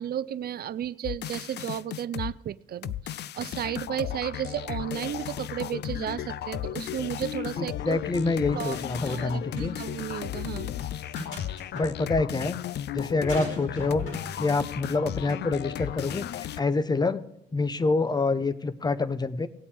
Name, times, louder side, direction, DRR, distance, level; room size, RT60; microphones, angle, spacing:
voice 1, 0.0-8.0 8.5-8.8 9.0-10.7, right 10 dB, 50° right, 17 dB, 0.5 m, -33 dB
sound 1, 1.0-2.3 2.8-16.6, left 11 dB, 60° left, 0.4 m, -35 dB
voice 2, 7.6-9.8 11.7-12.6 12.9-14.0 14.4-17.2 17.5-19.5, left 3 dB, 20° left, 14 dB, 0.7 m, -27 dB
sound 2, 8.2-9.3 9.6-9.7 10.8-11.9 13.3-14.3, equal, 75° left, 5.0 m, -39 dB
19.0 x 8.4 x 3.4 m, 0.82 s
cardioid pair, 90°, 20 cm